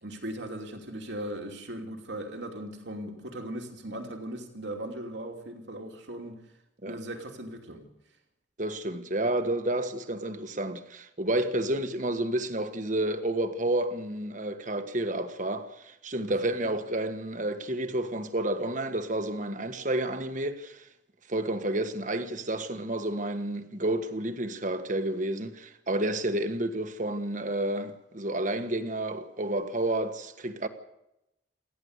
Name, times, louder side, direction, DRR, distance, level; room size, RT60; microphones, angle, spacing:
voice 1, 0.0-6.4 6.8-7.8, right 1 dB, 75° right, 2.8 m, -38 dB
voice 2, 8.6-20.9 21.3-30.7, right 1 dB, 45° right, 1.4 m, -30 dB
28.5 x 11.0 x 8.1 m
head